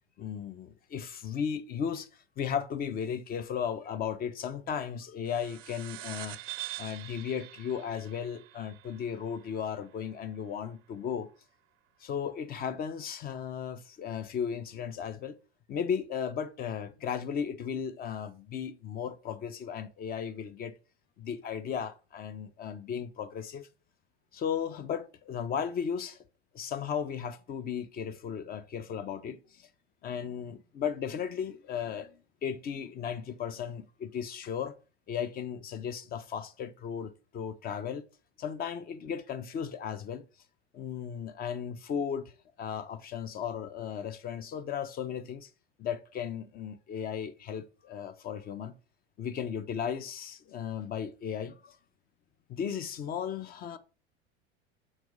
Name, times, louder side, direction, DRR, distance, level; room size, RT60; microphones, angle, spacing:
voice 1, 0.2-2.1 2.4-6.4 6.8-11.3 12.0-15.4 15.7-20.7 21.2-23.7 24.3-26.2 26.5-29.7 30.0-34.7 35.1-38.0 38.4-40.2 40.7-42.3 42.6-45.5 45.8-48.8 49.2-51.8 52.5-53.8, left 7 dB, 30° left, 0.4 m, -35 dB
sound 1, 5.3-10.2, right 16 dB, 40° right, 0.4 m, -45 dB
3.4 x 3.2 x 4.8 m
hypercardioid pair, 80°, 33 cm